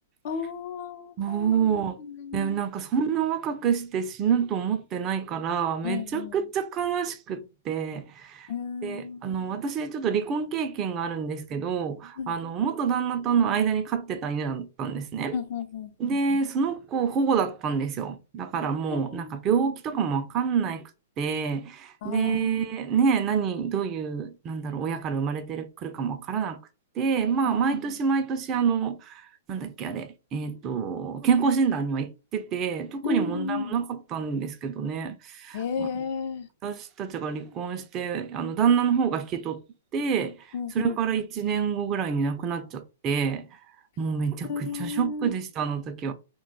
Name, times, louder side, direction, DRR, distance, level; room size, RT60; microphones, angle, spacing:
voice 1, 0.2-2.6 5.8-6.4 8.5-9.3 12.2-12.3 15.3-16.2 18.9-19.3 22.0-22.5 27.4-27.6 33.0-33.7 35.5-36.5 40.5-41.2 44.4-45.3, left 5 dB, 55° left, 0.6 m, -33 dB
voice 2, 1.2-2.0 2.3-8.5 8.8-15.3 16.0-20.9 21.2-26.6 27.0-35.9 36.6-39.6 39.9-40.4 40.7-43.5 44.0-46.1, right 6 dB, 30° right, 0.4 m, -27 dB
2.2 x 2.1 x 3.9 m
hypercardioid pair, 125°, 0 cm